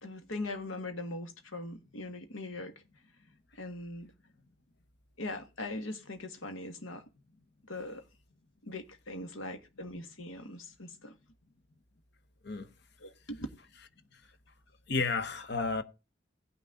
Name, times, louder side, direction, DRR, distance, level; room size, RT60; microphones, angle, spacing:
voice 1, 0.0-2.7 3.5-4.1 5.2-7.0 7.6-8.0 8.6-11.1 13.0-13.5 15.5-15.7, left 2 dB, 85° left, 1.6 m, -40 dB
voice 2, 14.9-15.8, left 4 dB, 55° left, 1.0 m, -32 dB
16.5 x 6.1 x 3.7 m
head